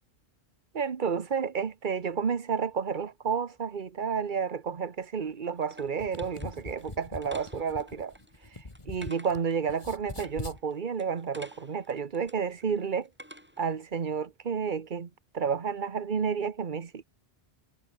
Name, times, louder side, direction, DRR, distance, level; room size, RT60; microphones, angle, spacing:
voice 1, 0.7-8.1 8.5-8.6 8.9-13.1 13.6-17.0, right 6 dB, 50° right, 1.2 m, -31 dB
sound 1, 4.9-13.8, equal, 10° right, 8.0 m, -52 dB
sound 2, 5.9-9.4 9.7-10.6, left 2 dB, 30° left, 2.0 m, -42 dB
omnidirectional pair, 1.1 m